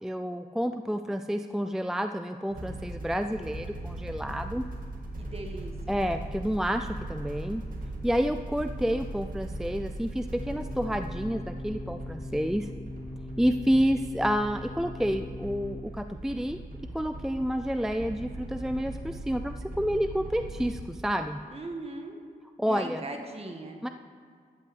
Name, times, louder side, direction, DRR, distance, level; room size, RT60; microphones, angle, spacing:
voice 1, 0.0-4.6 5.9-7.6 8.0-12.7 13.4-16.6 16.9-21.4 22.6-23.0 23.8-23.9, equal, 5° right, 8 dB, 0.4 m, -29 dB
sound 1, 2.5-20.8, right 1 dB, 60° right, 1.9 m, -39 dB
voice 2, 5.2-6.0 21.5-22.1 22.7-23.8, right 2 dB, 40° right, 3 dB, 1.6 m, -39 dB
sound 2, 10.4-15.8, left 2 dB, 25° left, 1.0 m, -42 dB
13.0 x 5.8 x 7.9 m, 2.1 s
cardioid pair, 80°, 16 cm